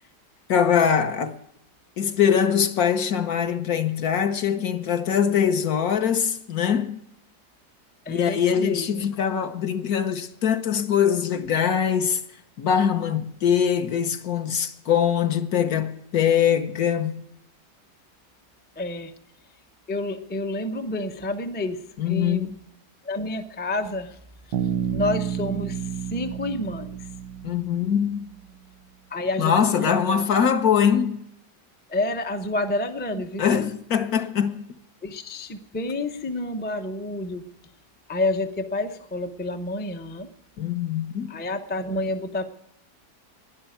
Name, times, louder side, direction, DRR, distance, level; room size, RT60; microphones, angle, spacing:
voice 1, 0.5-1.3 2.0-7.0 8.1-12.2 12.6-17.1 22.0-22.5 27.4-28.3 29.4-31.2 33.4-34.7 40.6-41.3, left 8 dB, 60° left, 1.4 m, -22 dB
voice 2, 8.1-9.0 18.8-19.1 19.9-22.5 23.0-24.2 24.9-27.0 29.1-29.5 29.9-30.3 31.9-33.7 35.0-37.4 38.1-40.3 41.3-42.4, left 2 dB, 10° left, 0.4 m, -29 dB
Bass guitar, 24.5-28.2, right 8 dB, 85° right, 1.4 m, -30 dB
12.0 x 10.5 x 9.1 m
omnidirectional pair, 1.8 m